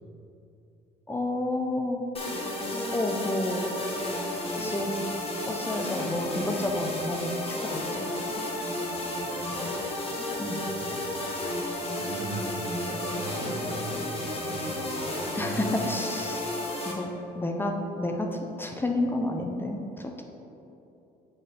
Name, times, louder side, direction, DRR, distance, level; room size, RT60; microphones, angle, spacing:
voice 1, 1.1-2.0 2.9-3.6 4.6-4.9 5.4-8.1 10.4-10.6 15.4-16.4 16.8-17.1 17.4-20.2, left 1 dB, 15° left, 2 dB, 0.6 m, -30 dB
sound 1, 2.1-16.9, left 1 dB, 35° left, 1.3 m, -32 dB
voice 2, 4.4-4.7 5.8-5.9 8.7-10.0 10.6-11.1 11.9-15.7, right 2 dB, 80° right, -2 dB, 1.5 m, -40 dB
6.7 x 4.0 x 5.1 m, 2.9 s
cardioid pair, 110°, 17 cm